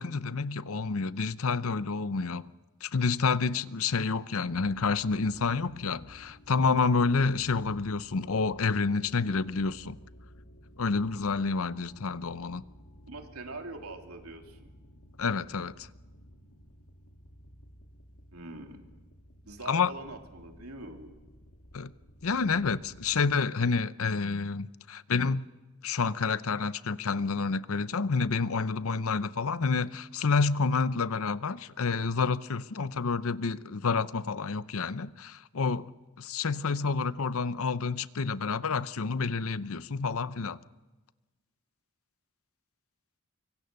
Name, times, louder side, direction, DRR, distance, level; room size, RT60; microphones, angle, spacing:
voice 1, 0.0-2.4 2.8-10.0 10.8-12.6 15.2-15.9 19.7-19.9 21.7-21.9 22.2-25.5 25.8-40.6, left 4 dB, 70° left, 0.7 m, -29 dB
sound 1, 4.4-23.3, equal, 85° left, 2.7 m, -54 dB
voice 2, 13.1-14.7 18.3-18.8 19.4-21.1, right 2 dB, 85° right, 3.1 m, -43 dB
24.5 x 24.0 x 6.7 m
head